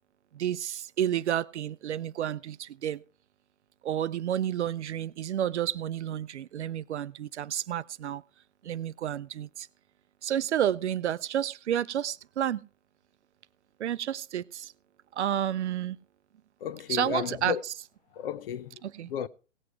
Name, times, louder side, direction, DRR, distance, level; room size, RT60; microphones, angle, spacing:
voice 1, 0.3-3.0 3.8-8.2 8.6-9.7 10.2-12.6 13.8-14.7 15.1-16.0 16.9-17.5 18.8-19.1, right 10 dB, 60° right, 0.6 m, -30 dB
voice 2, 16.6-17.6 18.1-18.8 19.1-19.3, left 8 dB, 45° left, 0.7 m, -33 dB
17.5 x 7.7 x 4.5 m
figure-of-eight pair, 125°, 38 cm